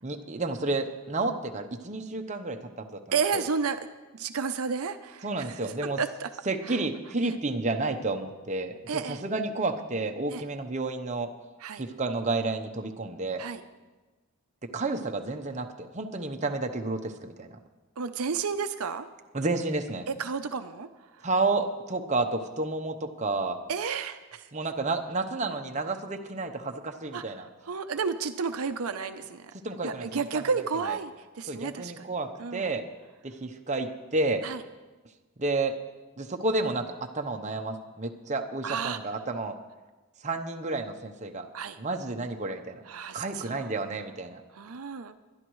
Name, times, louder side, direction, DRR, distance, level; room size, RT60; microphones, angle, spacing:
voice 1, 0.0-3.0 3.3-3.4 5.2-6.0 6.5-11.3 11.8-13.4 14.7-17.6 19.3-20.1 21.2-23.6 24.5-27.5 29.6-30.5 30.9-31.0 31.5-32.9 33.2-34.4 35.4-35.8 36.2-39.6 40.2-41.5 41.8-42.8 43.1-44.4, right 3 dB, 35° right, 4 dB, 0.8 m, -31 dB
voice 2, 3.1-3.8 4.1-5.5 6.0-6.3 7.3-7.4 8.9-9.2 10.3-10.4 11.6-11.8 13.4-13.6 18.0-19.1 20.1-20.9 23.7-24.4 27.1-27.2 27.7-29.5 29.8-32.1 32.4-32.7 34.4-34.6 38.6-39.0 41.5-41.8 42.9-43.7 44.5-45.2, right 5 dB, 75° right, 9 dB, 0.6 m, -31 dB
21.5 x 11.5 x 3.1 m, 1.2 s
head